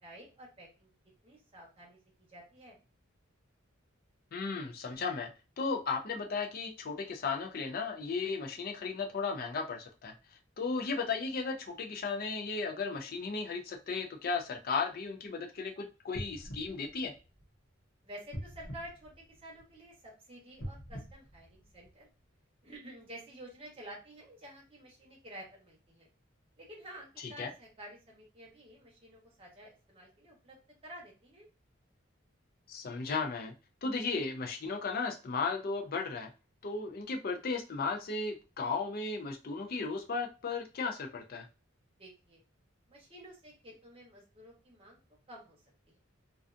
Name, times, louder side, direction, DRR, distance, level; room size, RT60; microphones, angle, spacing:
voice 1, 0.0-0.9 1.2-2.8 18.0-22.1 22.6-26.1 26.6-30.6 30.8-31.5 42.0-42.4 42.9-45.0 45.3-45.6 45.9-46.0, right 1 dB, 25° right, -3 dB, 0.9 m, -51 dB
voice 2, 4.3-5.3 5.6-10.1 10.6-17.1 27.2-27.5 32.7-33.5 33.8-36.3 36.6-41.5, left 4 dB, 45° left, 4 dB, 0.4 m, -35 dB
sound 1, 16.1-17.8 18.3-19.8 20.5-22.2 22.7-22.8, equal, 65° left, 0.9 m, -45 dB
2.5 x 2.3 x 2.4 m, 0.32 s
head